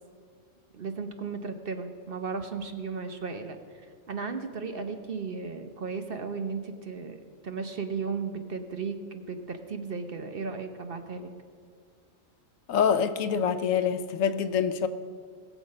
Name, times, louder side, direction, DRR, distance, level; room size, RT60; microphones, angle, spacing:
voice 1, 0.7-3.6 4.1-11.3, right 5 dB, 50° right, 7 dB, 1.0 m, -35 dB
voice 2, 12.7-14.9, left 7 dB, 80° left, 11 dB, 1.1 m, -25 dB
20.0 x 7.3 x 5.3 m, 2.1 s
omnidirectional pair, 1.4 m